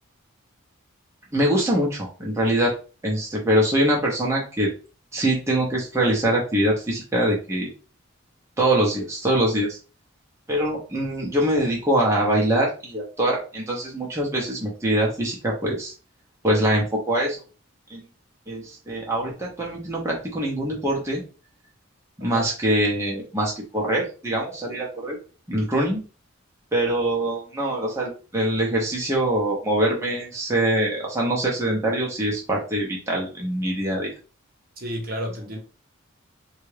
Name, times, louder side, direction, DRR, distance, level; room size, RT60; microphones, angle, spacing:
voice 1, 1.3-2.7 3.0-4.7 5.1-7.7 8.6-9.8 10.5-15.9 16.4-17.4 17.9-18.0 18.5-21.2 22.2-25.2 25.5-26.0 26.7-34.1, right 1 dB, 15° right, 0.7 m, -23 dB
voice 2, 34.8-35.6, equal, 45° right, 0.8 m, -31 dB
3.6 x 2.4 x 3.2 m
head